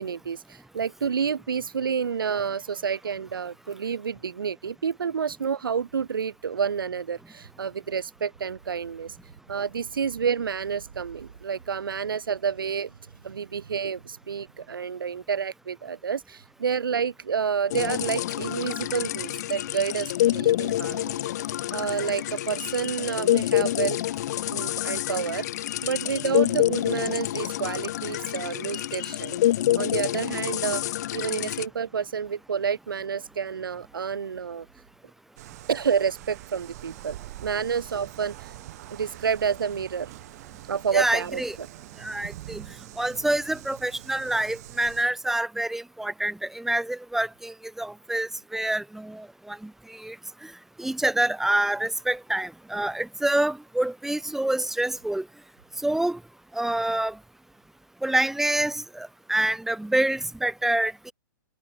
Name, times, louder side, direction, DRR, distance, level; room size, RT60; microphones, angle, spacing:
voice 1, 0.0-9.2 9.5-12.9 13.2-21.2 21.7-24.0 24.5-29.4 29.7-34.7 35.7-38.6 38.9-40.1 40.7-41.7, right 6 dB, 75° right, 2.8 m, -29 dB
sound 1, 17.7-31.7, left 13 dB, 50° left, 0.7 m, -27 dB
sound 2, 35.4-45.0, right 16 dB, 45° right, 5.6 m, -44 dB
voice 2, 40.9-41.6 42.0-42.6 43.0-50.2 50.4-50.5 50.8-55.2 55.8-56.2 56.5-57.2 58.0-61.1, right 1 dB, 5° right, 1.6 m, -27 dB
hypercardioid pair, 130°, 12 cm